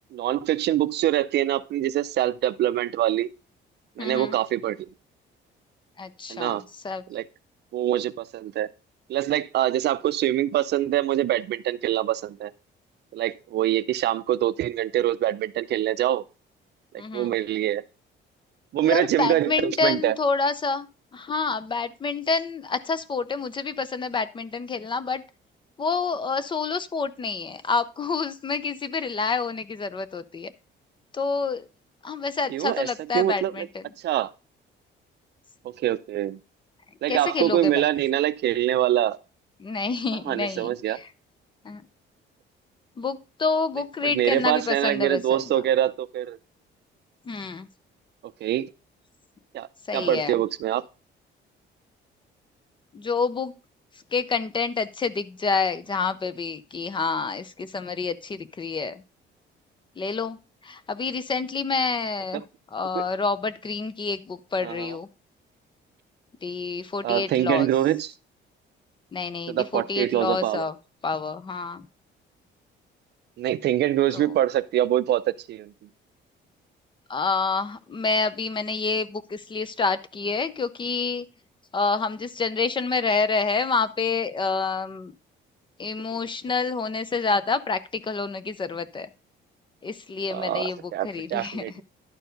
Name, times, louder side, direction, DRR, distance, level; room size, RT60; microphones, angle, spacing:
voice 1, 0.1-3.3 4.0-4.9 6.3-6.6 7.1-7.2 7.7-8.7 9.1-12.5 13.1-16.2 16.9-17.8 18.7-20.1 32.5-32.9 33.1-33.5 34.0-34.3 35.6-36.4 37.0-39.2 40.3-41.0 44.0-46.4 48.4-48.7 49.5-49.7 49.9-50.8 62.9-63.0 64.6-65.0 67.0-68.1 69.5-70.7 73.4-75.7 90.3-91.8, right 12 dB, 60° right, 0.5 m, -24 dB
voice 2, 4.0-4.4 6.0-7.0 17.0-17.3 18.8-20.9 21.1-25.2 25.8-30.5 31.1-31.7 32.0-33.9 37.1-37.8 39.6-41.1 41.6-41.8 43.0-45.6 47.3-47.7 49.9-50.4 52.9-53.5 54.1-59.0 60.0-60.4 60.6-62.4 62.7-65.1 66.4-67.7 69.1-70.7 71.0-71.9 74.1-74.3 77.1-81.3 81.7-85.1 85.8-89.1 89.8-91.6, left 4 dB, 25° left, 0.6 m, -28 dB
11.5 x 4.6 x 5.1 m
cardioid pair, 150°, 20 cm